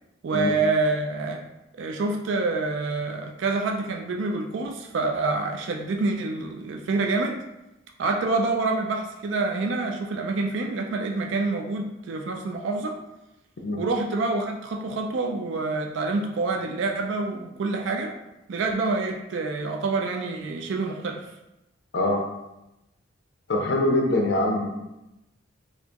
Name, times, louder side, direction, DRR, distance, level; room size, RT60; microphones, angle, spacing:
voice 1, 0.2-1.4 1.8-7.4 8.0-13.0 13.8-18.1 18.5-21.3, right 3 dB, 65° right, 3 dB, 0.3 m, -27 dB
voice 2, 23.5-24.7, left 1 dB, 60° left, 0 dB, 0.5 m, -23 dB
4.1 x 2.8 x 2.9 m, 0.94 s
head